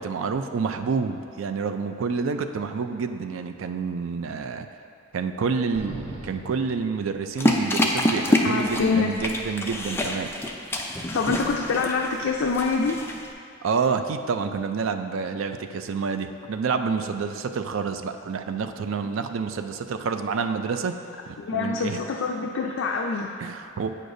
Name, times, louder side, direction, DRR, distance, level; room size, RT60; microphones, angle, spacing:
voice 1, 0.0-4.7 5.1-10.3 13.6-20.9 21.3-22.0 23.4-24.0, right 5 dB, 85° right, 8 dB, 0.4 m, -28 dB
sound 1, 5.7-7.7, right 1 dB, 60° right, 1.0 m, -40 dB
sound 2, 7.4-13.3, left 1 dB, 10° left, 0.4 m, -26 dB
voice 2, 8.4-9.1 11.1-12.9 21.4-23.3, left 4 dB, 75° left, 1 dB, 0.4 m, -25 dB
8.6 x 6.5 x 2.6 m, 2.5 s
head